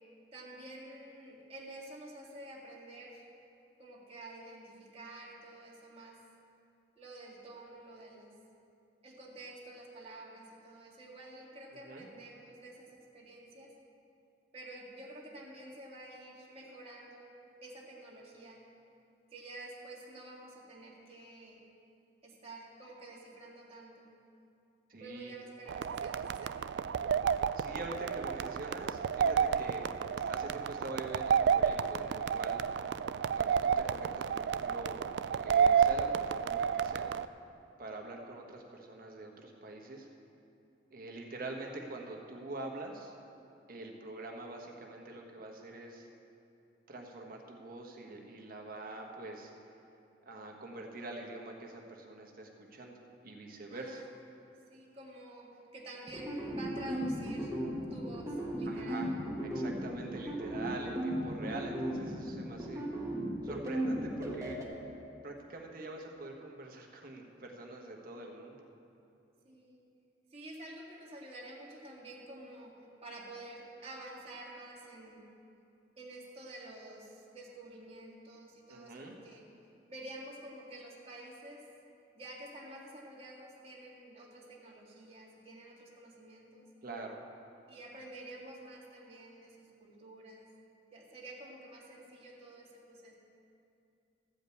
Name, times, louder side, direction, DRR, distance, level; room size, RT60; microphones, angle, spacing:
voice 1, 0.3-3.2 3.8-6.2 7.0-8.3 9.0-13.7 14.5-18.6 19.3-21.6 22.2-24.1 25.0-26.6 53.7-54.1 54.7-57.5 57.9-59.1 69.4-69.8 70.3-72.7 73.0-75.3 76.0-79.5 79.9-81.6 82.1-86.7 87.7-90.5 90.9-93.1, right 1 dB, 35° right, -3 dB, 1.9 m, -49 dB
voice 2, 11.7-12.1 24.9-25.3 27.5-29.8 30.3-32.6 33.3-37.1 37.4-40.1 40.9-43.1 43.7-46.1 46.9-49.5 50.2-52.9 53.2-54.0 58.6-59.1 59.4-62.9 63.4-64.6 65.2-68.6 78.7-79.2 86.8-87.2, right 2 dB, 50° right, 1 dB, 1.3 m, -45 dB
sound 1, 25.7-37.3, right 7 dB, 65° right, 0.3 m, -31 dB
sound 2, 56.1-64.6, right 1 dB, 20° right, 1.4 m, -36 dB
14.0 x 5.2 x 8.4 m, 2.7 s
head